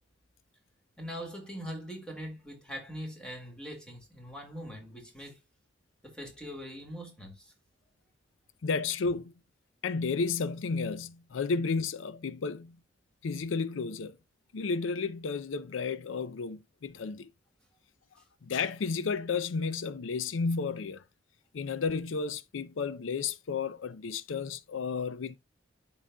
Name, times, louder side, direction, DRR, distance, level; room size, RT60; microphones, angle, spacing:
voice 1, 1.0-5.4 6.0-7.5 18.2-18.3, equal, 5° left, 1.9 m, -42 dB
voice 2, 8.6-9.3 9.8-12.8 13.2-14.1 14.5-17.3 18.4-21.0 21.5-25.4, left 4 dB, 85° left, 0.5 m, -32 dB
11.5 x 3.9 x 2.2 m
head